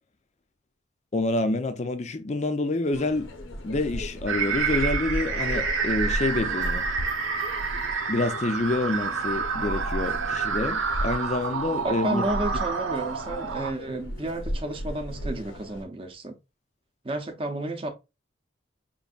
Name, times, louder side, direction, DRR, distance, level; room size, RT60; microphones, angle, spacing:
voice 1, 1.1-3.3 3.6-6.8 8.1-12.2, left 2 dB, 35° left, 0.5 m, -27 dB
sound 1, 2.9-15.8, equal, 85° left, 0.8 m, -35 dB
sound 2, 4.3-13.7, right 5 dB, 85° right, 0.8 m, -29 dB
voice 2, 11.8-16.3 17.0-17.9, right 2 dB, 30° right, 0.7 m, -31 dB
5.2 x 2.6 x 2.4 m
head